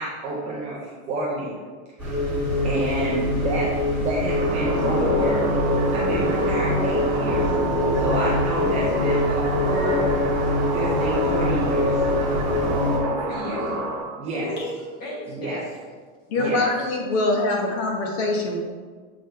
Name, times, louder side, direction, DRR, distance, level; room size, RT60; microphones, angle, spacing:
voice 1, 0.0-1.6 2.0-2.1 2.6-3.7 4.0-5.5 5.9-7.5 7.9-10.1 10.7-12.0 14.2-14.5 15.3-15.6 16.3-16.6, right 1 dB, 15° right, -7 dB, 0.5 m, -29 dB
sound 1, 2.0-13.0, left 1 dB, 5° left, 1.6 m, -24 dB
sound 2, 4.3-14.0, right 1 dB, 55° right, 1.2 m, -27 dB
voice 2, 12.5-14.0 14.3-15.8 16.3-16.5 17.1-17.2, left 1 dB, 20° left, -4 dB, 1.3 m, -35 dB
voice 3, 16.3-18.6, left 2 dB, 50° left, 0 dB, 1.2 m, -23 dB
7.8 x 3.7 x 3.3 m, 1.5 s
supercardioid pair, 175°, 41 cm